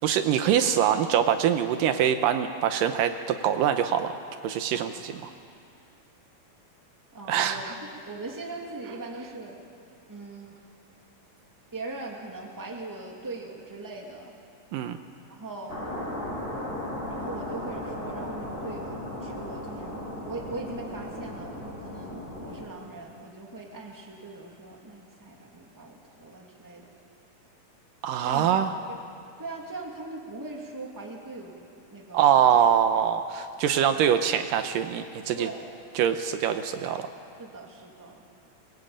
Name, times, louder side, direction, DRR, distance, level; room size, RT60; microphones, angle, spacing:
voice 1, 0.0-4.1 4.4-5.2 7.3-7.7 14.7-15.0 28.0-28.7 32.1-35.5 36.0-37.1, right 9 dB, 80° right, 8 dB, 2.4 m, -24 dB
voice 2, 7.1-9.6 10.1-10.5 11.7-14.3 15.3-15.8 17.1-20.0 20.2-26.9 28.2-28.6 28.9-29.0 29.4-31.5 31.9-32.6 33.9-34.0 35.3-35.7 37.4-38.2, right 2 dB, 5° right, 0 dB, 2.0 m, -40 dB
sound 1, 15.7-22.7, left 1 dB, 20° left, 5.3 m, -36 dB
23.0 x 20.5 x 8.7 m, 2.4 s
omnidirectional pair, 4.1 m